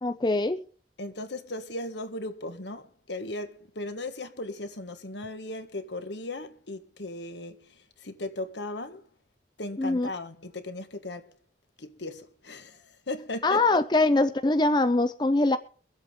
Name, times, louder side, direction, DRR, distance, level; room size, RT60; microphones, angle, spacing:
voice 1, 0.0-0.6 9.8-10.1 13.4-15.6, left 2 dB, 25° left, 0.5 m, -23 dB
voice 2, 1.0-7.6 8.0-9.0 9.6-11.3 11.8-13.8, left 2 dB, 75° left, 1.6 m, -37 dB
23.5 x 8.1 x 3.8 m
head